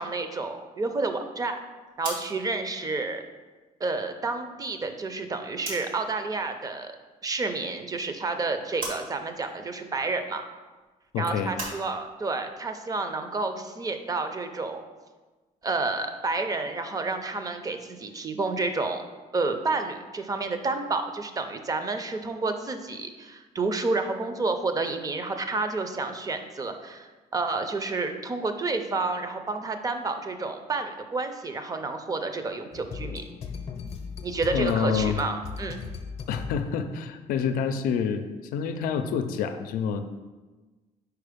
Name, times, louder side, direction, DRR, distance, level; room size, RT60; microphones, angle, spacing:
voice 1, 0.0-1.6 2.0-3.2 3.8-6.9 7.2-10.4 11.2-14.8 15.6-19.0 19.3-33.2 34.2-35.8, right 3 dB, 25° right, 7 dB, 0.5 m, -30 dB
sound 1, 1.8-6.1 6.4-7.5 7.8-11.8, right 2 dB, 80° right, 1.9 m, -41 dB
voice 2, 11.1-11.5 34.5-35.2 36.3-40.0, left 7 dB, 85° left, 8 dB, 0.5 m, -27 dB
sound 2, 32.7-36.9, left 5 dB, 45° left, 0.6 m, -37 dB
4.6 x 4.5 x 5.0 m, 1.3 s
cardioid pair, 120°, 14 cm